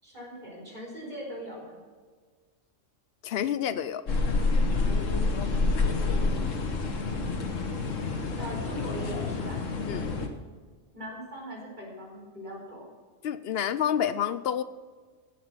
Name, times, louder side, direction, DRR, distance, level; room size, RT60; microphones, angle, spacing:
voice 1, 0.0-1.8 5.4-6.7 8.2-9.7 10.9-12.9, equal, 35° right, -4 dB, 4.6 m, -41 dB
voice 2, 3.2-4.0 9.9-10.1 13.2-14.6, left 9 dB, 60° left, 14 dB, 0.7 m, -28 dB
sound 1, 4.1-10.3, left 3 dB, 90° left, 1.6 m, -28 dB
16.0 x 6.2 x 5.9 m, 1.5 s
omnidirectional pair, 1.3 m